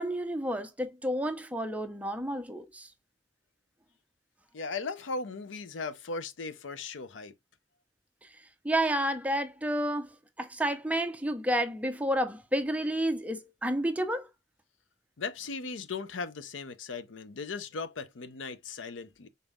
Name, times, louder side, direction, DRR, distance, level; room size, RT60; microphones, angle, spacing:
voice 1, 0.0-2.9 8.6-14.3, right 1 dB, 10° right, 0.6 m, -30 dB
voice 2, 4.5-7.3 15.2-19.3, left 4 dB, 85° left, 0.6 m, -37 dB
5.2 x 4.1 x 2.3 m
head